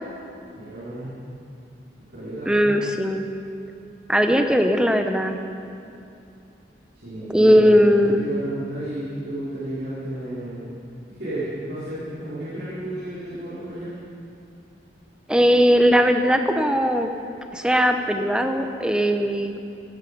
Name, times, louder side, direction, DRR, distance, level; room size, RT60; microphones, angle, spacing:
voice 1, 0.5-1.1 2.1-2.5 6.9-10.7 11.2-13.9, right 1 dB, 85° right, -12 dB, 4.4 m, -32 dB
voice 2, 2.4-3.2 4.1-5.4 7.3-8.2 15.3-17.1 17.5-19.6, equal, 5° right, 6 dB, 0.8 m, -19 dB
16.0 x 15.0 x 5.3 m, 2.6 s
head